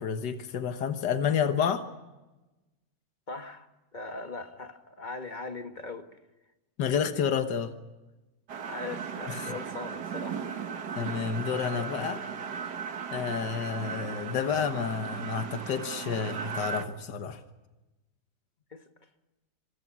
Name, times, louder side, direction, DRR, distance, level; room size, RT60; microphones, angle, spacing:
voice 1, 0.0-1.8 6.8-7.7 9.3-9.5 11.0-12.2 13.1-17.4, left 7 dB, 75° left, 1.9 m, -30 dB
voice 2, 3.3-6.2 8.7-10.5 18.7-19.1, left 3 dB, 25° left, 1.5 m, -40 dB
sound 1, 8.5-16.9, right 6 dB, 65° right, 1.9 m, -37 dB
26.0 x 24.0 x 6.2 m
omnidirectional pair, 1.9 m